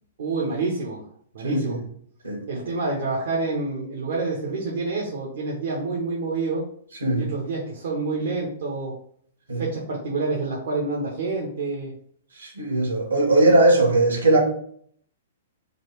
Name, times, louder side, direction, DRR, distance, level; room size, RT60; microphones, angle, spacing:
voice 1, 0.2-1.0 1.3-1.8 2.5-6.6 7.2-8.9 9.6-11.9, right 3 dB, 65° right, 0.9 m, -28 dB
voice 2, 1.4-1.8 2.2-2.4 7.0-7.3 9.5-9.6 12.4-14.4, right 2 dB, 80° right, 1.6 m, -19 dB
4.0 x 2.4 x 4.6 m
figure-of-eight pair, 115°, 0 cm